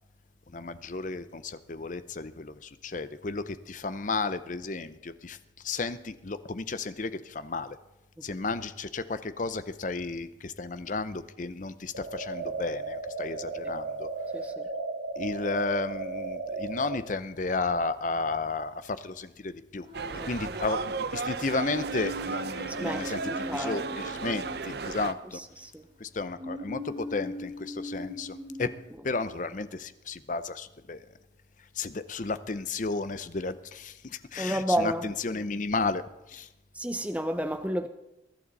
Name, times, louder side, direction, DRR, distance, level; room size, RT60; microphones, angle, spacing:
voice 1, 0.5-5.4 5.6-7.8 8.2-14.1 15.2-19.9 20.2-25.4 26.0-28.7 29.0-31.0 31.7-36.0 36.3-36.5, left 3 dB, 40° left, 0.6 m, -33 dB
sound 1, 11.9-17.0, right 3 dB, 90° right, 1.5 m, -35 dB
voice 2, 14.3-14.7 20.2-20.3 22.8-23.8 25.3-25.9 34.4-35.1 36.7-37.9, right 1 dB, 5° right, 0.6 m, -31 dB
sound 2, 19.8-20.9 21.5-25.4 26.4-28.8, left 1 dB, 30° right, 6.7 m, -40 dB
sound 3, 19.9-25.1, right 4 dB, 55° right, 0.6 m, -35 dB
22.5 x 11.5 x 4.1 m
head